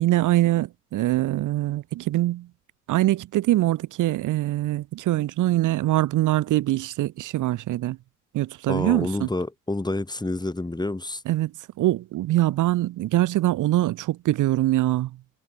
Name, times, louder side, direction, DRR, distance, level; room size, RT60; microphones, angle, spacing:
voice 1, 0.0-2.5 2.9-8.0 8.3-9.3 11.3-11.5 11.8-15.1, right 15 dB, 80° right, 1.4 m, -23 dB
voice 2, 8.7-11.2, left 2 dB, 15° left, 7.2 m, -28 dB
cardioid pair, 90°, 30 cm